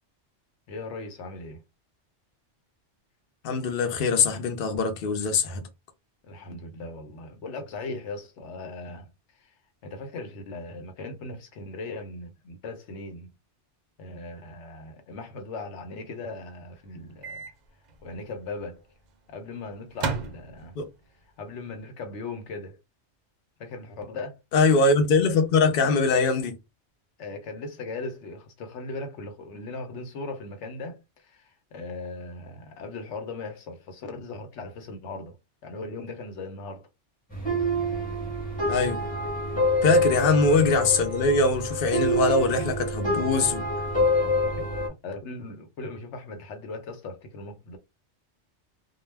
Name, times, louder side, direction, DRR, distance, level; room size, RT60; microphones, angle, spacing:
voice 1, 0.7-1.6 6.2-9.5 9.8-13.3 14.0-17.5 18.0-18.8 19.3-20.8 21.4-22.8 23.6-24.4 27.2-35.4 35.6-36.9 40.2-40.3 44.6-47.8, left 3 dB, 80° left, 1.0 m, -38 dB
voice 2, 3.4-5.7 20.8-20.9 24.5-26.6 38.7-39.0 39.8-43.6, left 3 dB, 55° left, 0.8 m, -22 dB
Microwave oven, 17.2-17.5 17.9-18.0 19.9-21.0, right 4 dB, 55° right, 0.5 m, -33 dB
sound 1, 37.3-44.9, left 1 dB, 10° left, 1.0 m, -26 dB
2.2 x 2.2 x 3.2 m
omnidirectional pair, 1.2 m